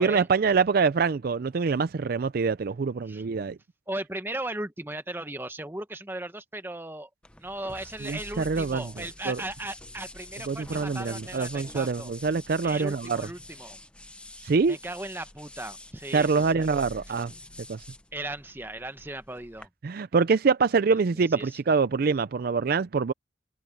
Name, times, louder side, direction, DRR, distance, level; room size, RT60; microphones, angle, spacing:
voice 1, 0.0-3.6 8.0-8.9 9.3-9.4 10.5-13.3 14.4-14.8 16.1-17.3 17.7-17.8 19.8-23.1, right 5 dB, 50° right, 0.4 m, -25 dB
voice 2, 3.9-7.1 7.4-12.1 12.6-13.8 14.7-16.7 18.1-19.7 21.1-21.6, right 1 dB, 10° right, 1.0 m, -37 dB
sound 1, 7.2-19.7, left 1 dB, 5° left, 0.8 m, -46 dB
head